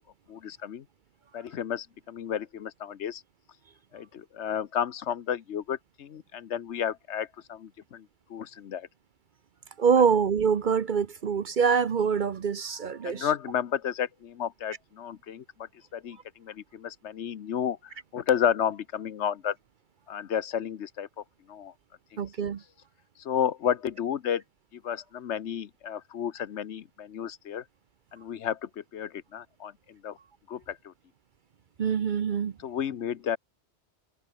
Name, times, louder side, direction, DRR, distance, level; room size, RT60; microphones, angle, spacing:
voice 1, 0.3-0.8 1.3-3.2 3.9-8.9 13.0-19.6 20.1-21.1 21.5-21.7 22.1-22.2 23.2-24.4 24.7-27.6 28.1-30.2 30.5-30.9 32.6-33.4, left 9 dB, 75° left, 1.2 m, -32 dB
voice 2, 9.8-13.3 22.2-22.6 31.8-32.5, right 6 dB, 50° right, 0.8 m, -25 dB
omnidirectional pair, 1.2 m